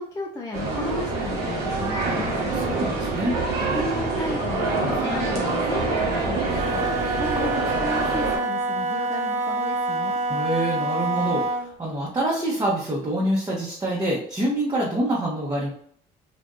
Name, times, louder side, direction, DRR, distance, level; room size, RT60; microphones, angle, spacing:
voice 1, 0.0-2.5 3.6-10.2, left 1 dB, 20° left, 0 dB, 0.4 m, -34 dB
sound 1, 0.5-8.4, right 3 dB, 85° right, 1.1 m, -26 dB
voice 2, 2.5-3.4 10.3-15.7, right 1 dB, 20° right, -5 dB, 0.9 m, -26 dB
Wind instrument woodwind instrument, 6.3-11.7, right 2 dB, 45° right, 0.6 m, -27 dB
3.4 x 2.5 x 2.6 m, 0.62 s
cardioid pair, 110°, 17 cm